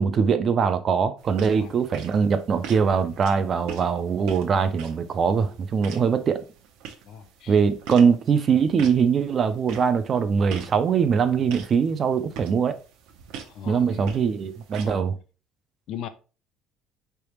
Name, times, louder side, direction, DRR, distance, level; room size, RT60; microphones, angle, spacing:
voice 1, 0.0-6.4 7.5-12.8 13.7-15.1, right 6 dB, 30° right, 0.3 m, -22 dB
sound 1, 1.2-14.9, right 7 dB, 75° right, 0.7 m, -43 dB
voice 2, 7.1-7.6 7.9-8.0 13.5-14.2 14.8-15.1 15.9-16.1, left 10 dB, 50° left, 0.4 m, -39 dB
4.6 x 3.4 x 2.9 m
cardioid pair, 175°, 0 cm